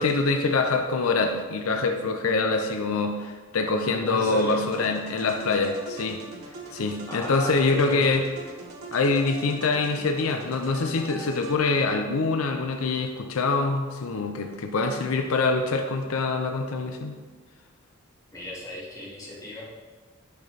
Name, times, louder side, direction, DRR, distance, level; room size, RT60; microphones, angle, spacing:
voice 1, 0.0-6.2 6.7-8.2 8.9-17.1, left 3 dB, 90° left, 5 dB, 0.5 m, -25 dB
voice 2, 4.1-4.9 7.1-8.2 18.3-19.7, left 1 dB, 15° left, -6 dB, 1.6 m, -35 dB
sound 1, 4.3-12.0, right 2 dB, 85° right, 1.0 m, -42 dB
10.0 x 4.0 x 3.2 m, 1.4 s
head